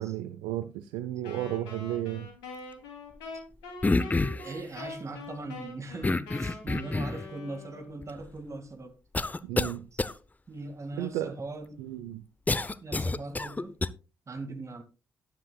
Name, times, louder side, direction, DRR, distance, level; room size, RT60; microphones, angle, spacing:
voice 1, 0.0-2.3 9.4-9.8 11.0-11.3 11.8-12.2, right 13 dB, 75° right, 0.6 m, -33 dB
Wind instrument woodwind instrument, 1.2-8.1, left 3 dB, 75° left, 2.8 m, -44 dB
sound 1, 3.8-4.5 6.0-7.3 8.0-8.1 9.1-9.7 10.0-10.1 12.5-13.9, left 3 dB, 20° left, 0.7 m, -28 dB
voice 2, 4.3-8.9 9.9-10.0 10.5-11.8 12.8-13.7 14.3-14.8, right 2 dB, 40° right, 2.1 m, -40 dB
13.0 x 10.5 x 2.3 m
hypercardioid pair, 40°, 8 cm